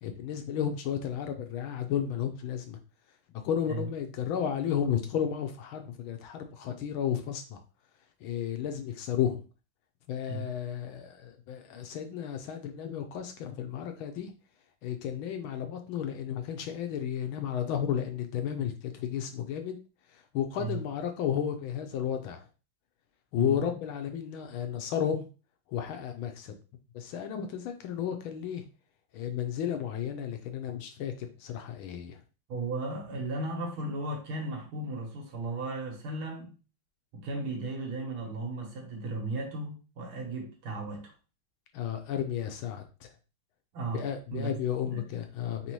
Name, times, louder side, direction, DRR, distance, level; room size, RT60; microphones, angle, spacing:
voice 1, 0.0-2.8 3.4-7.6 8.2-9.4 10.1-14.3 14.8-19.8 20.1-22.4 23.3-25.3 25.7-26.5 26.9-28.6 29.1-32.2 41.7-43.1 43.9-45.7, left 9 dB, 75° left, 1.4 m, -33 dB
voice 2, 23.4-23.8 32.5-36.5 37.1-41.1 43.7-44.1 44.3-44.6 44.9-45.2, right 2 dB, 70° right, 2.0 m, -35 dB
4.1 x 4.1 x 3.0 m
omnidirectional pair, 2.4 m